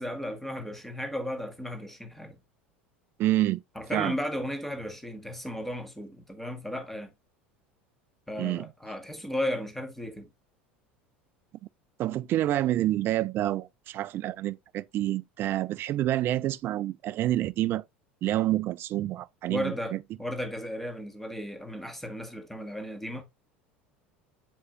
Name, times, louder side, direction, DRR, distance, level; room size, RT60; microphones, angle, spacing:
voice 1, 0.0-2.3 3.7-7.1 8.3-10.3 19.5-23.2, left 1 dB, 5° left, 1.5 m, -35 dB
voice 2, 3.2-3.6 3.9-4.1 8.4-8.7 12.0-17.8 18.2-20.0, right 14 dB, 40° right, 0.4 m, -28 dB
7.8 x 4.8 x 2.5 m
figure-of-eight pair, 70°, 6 cm